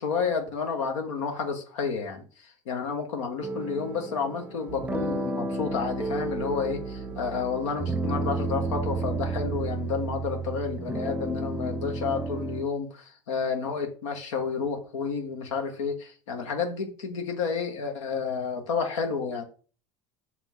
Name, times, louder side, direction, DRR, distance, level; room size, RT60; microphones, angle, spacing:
voice 1, 0.0-19.4, left 5 dB, 85° left, 4 dB, 1.2 m, -30 dB
sound 1, 3.4-12.6, right 2 dB, 10° right, 0.7 m, -32 dB
sound 2, 4.7-9.7, right 15 dB, 55° right, 0.5 m, -42 dB
5.8 x 4.4 x 3.9 m, 0.39 s
hypercardioid pair, 90°, 16 cm